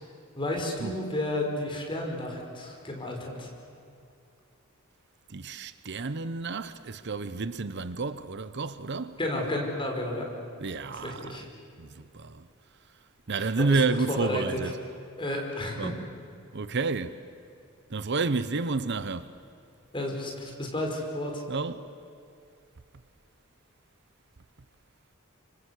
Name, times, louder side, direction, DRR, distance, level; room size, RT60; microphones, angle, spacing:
voice 1, 0.4-3.5 9.2-10.3 11.0-11.4 13.7-13.8 14.1-14.6 15.2-15.9 19.9-20.3 20.6-21.4, left 1 dB, 25° left, 5.0 m, -31 dB
voice 2, 5.3-9.2 10.6-11.5 11.8-12.5 13.3-14.8 15.8-15.9 16.5-17.2 17.9-19.4 21.5-21.9, right 3 dB, 55° right, 0.8 m, -30 dB
28.5 x 25.0 x 8.3 m
head